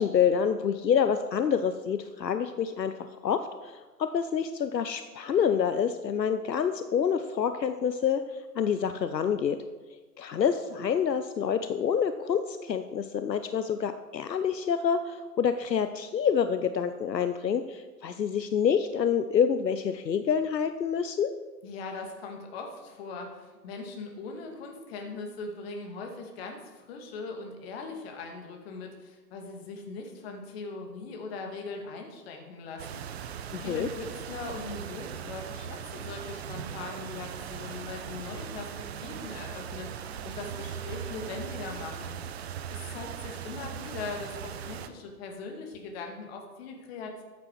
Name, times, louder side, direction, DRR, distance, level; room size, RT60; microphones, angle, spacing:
voice 1, 0.0-8.2 8.5-9.6 10.2-21.3 33.5-33.9, left 7 dB, 80° left, 10 dB, 0.8 m, -27 dB
voice 2, 21.6-33.0 33.6-38.7 39.0-42.2 42.7-47.2, left 3 dB, 35° left, 3 dB, 2.3 m, -40 dB
sound 1, 32.8-44.9, right 8 dB, 40° right, 0.8 m, -39 dB
13.5 x 8.5 x 4.6 m, 1.3 s
figure-of-eight pair, 125°, 50 cm